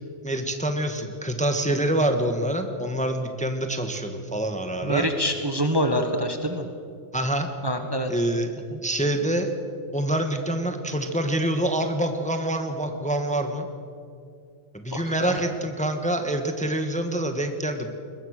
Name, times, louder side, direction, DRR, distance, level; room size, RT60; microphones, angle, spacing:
voice 1, 0.2-5.1 7.1-7.5 8.1-8.5 8.8-9.5 9.9-13.7 14.7-17.9, right 1 dB, 5° left, 6 dB, 1.4 m, -26 dB
voice 2, 4.8-6.6 7.6-8.1 8.7-8.8 14.9-15.4, equal, 20° right, 5 dB, 1.3 m, -26 dB
22.0 x 21.5 x 6.6 m, 2.4 s
omnidirectional pair, 1.4 m